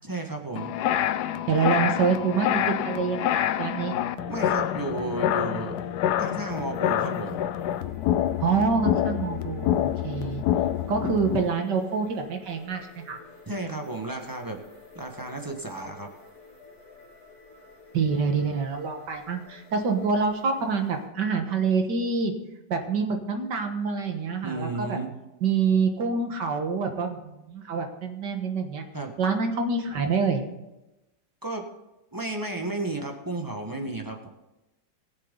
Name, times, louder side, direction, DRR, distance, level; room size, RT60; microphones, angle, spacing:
voice 1, 0.0-0.7 4.3-5.7 6.2-7.4 13.5-14.6 14.9-16.1 24.4-25.1 28.9-29.1 31.4-31.7 32.1-34.3, right 2 dB, 15° right, 2 dB, 1.2 m, -33 dB
sound 1, 0.6-11.5, left 11 dB, 70° left, 1.1 m, -27 dB
voice 2, 1.5-3.9 8.4-10.4 10.9-13.2 17.9-22.3 22.7-25.0 25.4-28.8 29.2-30.4, right 5 dB, 70° right, 5 dB, 2.0 m, -26 dB
sound 2, 4.7-21.1, left 3 dB, 55° left, 3.2 m, -51 dB
19.5 x 7.4 x 3.9 m, 0.99 s
omnidirectional pair, 2.0 m